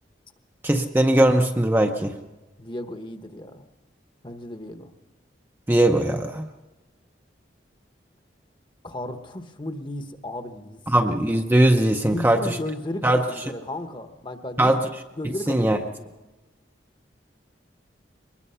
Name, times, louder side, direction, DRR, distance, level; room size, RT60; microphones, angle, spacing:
voice 1, 0.6-2.1 5.7-6.5 10.9-12.6 13.0-13.2 14.6-14.8 15.5-15.8, right 1 dB, 10° right, 3 dB, 0.7 m, -20 dB
voice 2, 2.6-3.6 4.2-4.9 8.8-10.8 12.0-14.7 15.2-16.1, left 1 dB, 25° left, 7 dB, 1.1 m, -34 dB
23.0 x 20.5 x 5.7 m, 1.1 s
head